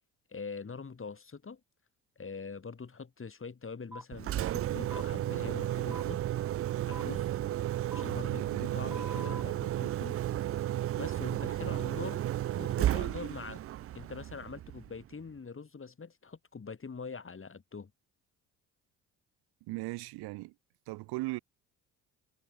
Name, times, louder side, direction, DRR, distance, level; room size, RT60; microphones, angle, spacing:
voice 1, 0.3-1.6 2.2-6.2 6.9-7.4 7.9-10.2 11.0-12.2 12.6-13.6 13.9-17.9, left 5 dB, 30° left, 7.2 m, -43 dB
sound 1, 3.9-4.0 4.9-5.1 5.9-6.0 6.9-7.0 7.9-8.0 8.9-9.4, right 1 dB, 5° right, 3.4 m, -44 dB
Engine, 4.1-15.1, right 13 dB, 35° right, 0.4 m, -33 dB
voice 2, 8.4-9.1 19.6-20.5 20.9-21.4, right 22 dB, 70° right, 1.8 m, -38 dB
hypercardioid pair, 60°, 39 cm